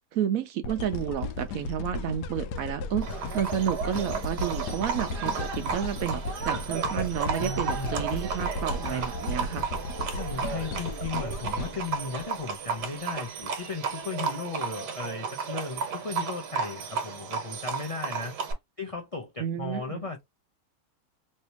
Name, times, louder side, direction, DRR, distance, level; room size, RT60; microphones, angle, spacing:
voice 1, 0.0-9.7 19.4-20.0, right 9 dB, 70° right, 0.9 m, -31 dB
sound 1, 0.6-12.8 13.4-13.5, left 3 dB, 85° left, 1.2 m, -35 dB
Livestock farm animals working animals, 3.0-18.5, right 6 dB, 85° right, 1.6 m, -33 dB
voice 2, 7.4-8.0 8.8-9.1 10.1-18.3 18.8-20.2, left 4 dB, 55° left, 0.3 m, -36 dB
3.2 x 2.8 x 2.8 m
omnidirectional pair, 1.7 m